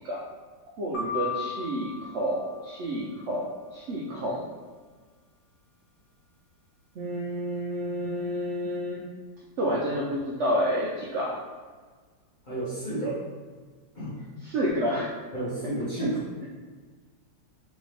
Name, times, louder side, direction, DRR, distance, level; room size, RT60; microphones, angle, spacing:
voice 1, 0.8-4.5 7.0-9.1 9.6-11.4 14.4-15.1 16.0-16.1, equal, 80° right, -5 dB, 0.6 m, -29 dB
sound 1, 0.9-3.1, left 6 dB, 70° left, 1.3 m, -36 dB
voice 2, 12.5-13.2 13.9-14.2 15.3-16.3, right 1 dB, 30° left, -10 dB, 1.4 m, -31 dB
3.5 x 3.1 x 3.3 m, 1.5 s
omnidirectional pair, 1.9 m